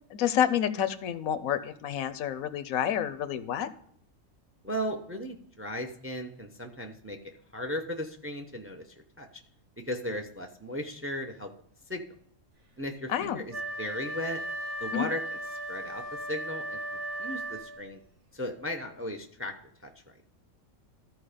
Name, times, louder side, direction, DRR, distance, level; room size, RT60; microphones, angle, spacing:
voice 1, 0.1-3.7 13.1-13.4 14.9-15.1, left 9 dB, 80° left, 13 dB, 1.1 m, -29 dB
voice 2, 4.6-8.8 9.2-9.3 9.9-11.5 11.9-12.0 12.8-14.4 14.8-15.4 15.7-16.0 16.3-16.8 17.2-18.0 18.3-19.5 19.8-19.9, left 1 dB, 15° right, 5 dB, 0.6 m, -36 dB
Wind instrument woodwind instrument, 13.5-17.9, right 1 dB, 85° right, 2.3 m, -36 dB
13.5 x 4.7 x 5.0 m, 0.64 s
omnidirectional pair, 1.4 m